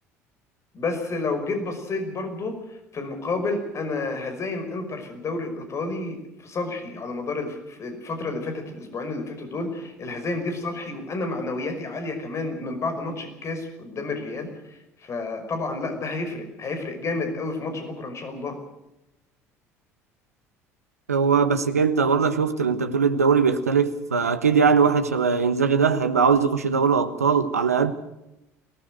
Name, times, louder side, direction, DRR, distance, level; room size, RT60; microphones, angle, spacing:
voice 1, 0.7-18.6, left 3 dB, 35° left, 5.6 m, -30 dB
voice 2, 21.1-27.9, right 5 dB, 80° right, 1.2 m, -20 dB
23.5 x 19.0 x 6.5 m
figure-of-eight pair, 60°, 8 cm